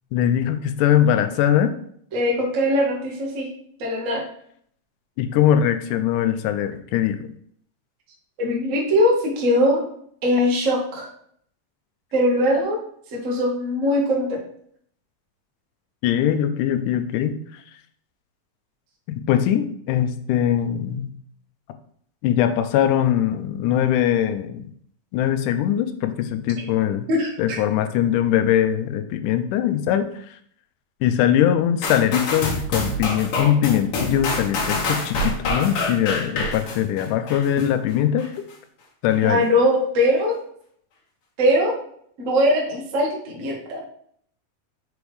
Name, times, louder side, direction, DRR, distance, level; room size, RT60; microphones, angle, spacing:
voice 1, 0.1-1.7 5.2-7.3 16.0-17.3 19.1-21.1 22.2-24.7 25.1-27.1 27.4-30.1 31.0-38.3 39.0-39.4, left 10 dB, 80° left, 8 dB, 2.0 m, -21 dB
voice 2, 2.1-3.5 3.8-4.2 8.4-9.8 10.2-11.1 12.1-12.8 13.1-14.3 27.1-27.6 39.2-40.4 41.4-41.7 42.2-43.8, left 1 dB, 70° right, -2 dB, 0.7 m, -21 dB
sound 1, 31.8-37.7 38.2-38.3, left 2 dB, 55° left, 1.8 m, -26 dB
6.1 x 3.4 x 4.8 m, 0.64 s
omnidirectional pair, 3.9 m